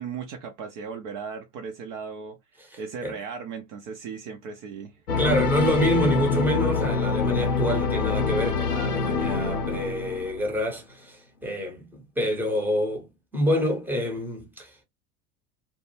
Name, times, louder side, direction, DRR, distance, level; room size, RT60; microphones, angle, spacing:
voice 1, 0.0-2.4 2.8-5.0, right 6 dB, 35° right, 0.5 m, -36 dB
voice 2, 2.7-3.1 5.2-14.8, equal, 5° right, 0.8 m, -27 dB
sound 1, 5.1-10.6, left 4 dB, 90° left, 0.5 m, -25 dB
2.5 x 2.1 x 2.9 m
figure-of-eight pair, 80°, 45 cm